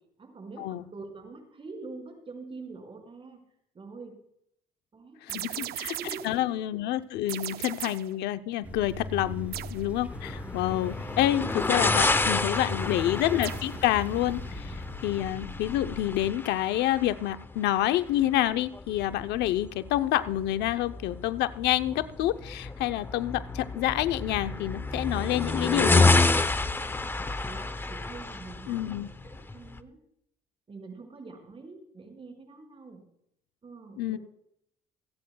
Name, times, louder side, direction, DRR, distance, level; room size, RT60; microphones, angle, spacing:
voice 1, 0.2-3.4 3.7-4.2 4.9-6.5 12.6-13.1 27.1-30.0 30.7-33.0 33.6-34.2, right 3 dB, 30° right, 4 dB, 5.2 m, -45 dB
voice 2, 5.2-6.0 6.2-14.8 15.0-26.1 28.7-29.1 34.0-34.2, left 13 dB, 85° left, 11 dB, 0.7 m, -28 dB
sound 1, 5.3-6.4 7.3-8.2 9.5-9.9 13.4-13.8, right 14 dB, 70° right, 0.5 m, -37 dB
sound 2, 8.6-16.3, left 1 dB, 5° right, 6.0 m, -40 dB
sound 3, 10.1-29.8, left 3 dB, 15° left, 0.7 m, -29 dB
28.0 x 9.5 x 2.3 m, 0.74 s
cardioid pair, 110°, 17 cm